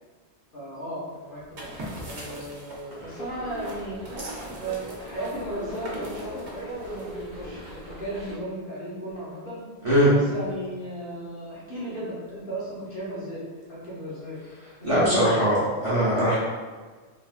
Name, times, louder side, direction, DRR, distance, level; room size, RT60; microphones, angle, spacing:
voice 1, 0.5-1.7 2.0-4.0 4.5-9.6 10.1-13.4 13.7-14.4 14.8-15.4, right 1 dB, 55° left, -8 dB, 1.0 m, -35 dB
sound 1, 1.4-7.5, right 1 dB, 80° right, 1.0 m, -41 dB
sound 2, 3.2-8.4, right 1 dB, 5° left, 1.0 m, -40 dB
voice 2, 14.8-16.4, equal, 30° right, -10 dB, 0.9 m, -21 dB
3.3 x 2.3 x 2.4 m, 1.4 s
omnidirectional pair, 1.1 m